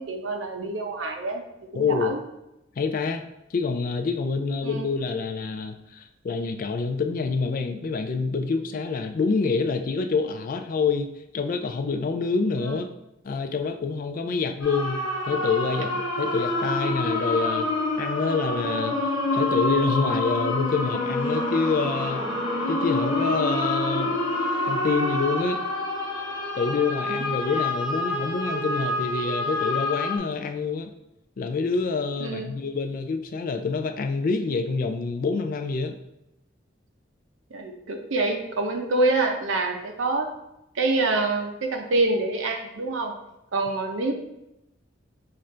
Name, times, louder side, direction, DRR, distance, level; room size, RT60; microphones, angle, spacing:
voice 1, 0.0-1.4 1.7-2.2 4.6-4.9 12.6-12.8 32.2-32.5 37.5-40.3 40.7-43.1 43.5-44.1, right 2 dB, 85° right, 3 dB, 0.6 m, -26 dB
voice 2, 1.7-2.1 2.8-3.2 3.5-12.9 13.2-17.7 18.0-22.3 22.7-24.2 24.7-25.6 26.5-30.9 31.4-36.0, left 4 dB, 45° left, 7 dB, 0.4 m, -27 dB
sound 1, 14.6-30.2, left 2 dB, 80° left, 1.0 m, -27 dB
5.6 x 2.5 x 3.2 m, 0.89 s
head